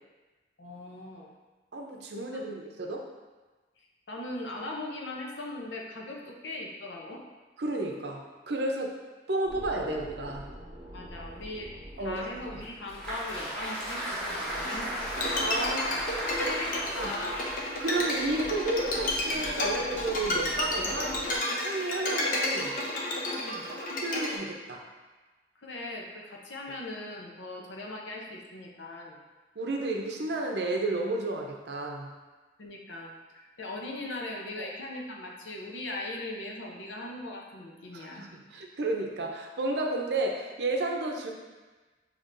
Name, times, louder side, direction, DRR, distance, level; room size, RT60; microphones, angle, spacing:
voice 1, 0.6-1.3 2.3-2.4 3.8-7.2 10.9-11.7 12.0-15.0 15.6-15.9 16.3-17.5 23.4-23.7 25.6-29.2 32.6-38.3, left 2 dB, 85° left, -1 dB, 0.8 m, -39 dB
voice 2, 1.7-3.1 7.6-9.0 9.3-10.5 12.0-12.6 15.4-16.0 17.0-17.1 17.8-22.7 23.7-24.8 29.6-32.1 34.6-34.7 37.9-41.3, right 2 dB, 70° right, 1 dB, 0.6 m, -32 dB
sound 1, 9.4-21.4, equal, 35° right, 0.8 m, -46 dB
Applause, 12.6-18.9, equal, 5° left, 1.0 m, -36 dB
Bowed string instrument, 15.1-24.4, left 1 dB, 50° left, 0.7 m, -31 dB
7.1 x 2.9 x 2.6 m, 1.3 s
head